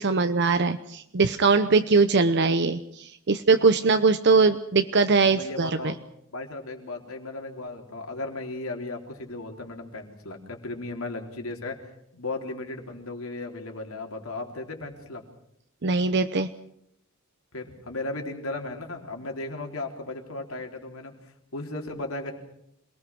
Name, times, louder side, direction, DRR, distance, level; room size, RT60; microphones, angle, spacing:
voice 1, 0.0-5.9 15.8-16.5, right 4 dB, 55° right, 10 dB, 0.8 m, -21 dB
voice 2, 5.2-6.0 6.3-11.8 12.1-15.2 17.5-21.1 21.5-22.3, left 2 dB, 80° left, 2 dB, 4.0 m, -35 dB
27.0 x 19.5 x 6.1 m, 0.77 s
head